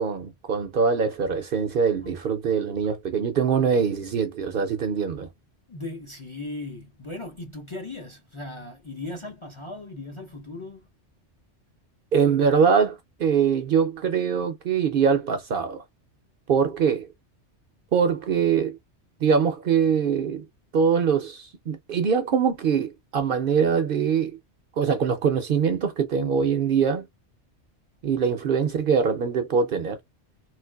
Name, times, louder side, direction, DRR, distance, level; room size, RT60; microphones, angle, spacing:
voice 1, 0.0-5.3 12.1-15.8 16.5-17.1 17.9-18.8 19.2-20.5 20.7-24.4 24.8-27.1 28.0-30.0, right 6 dB, 60° right, 0.6 m, -23 dB
voice 2, 5.7-10.9, left 2 dB, 35° left, 0.5 m, -37 dB
3.2 x 3.1 x 2.3 m
omnidirectional pair, 1.2 m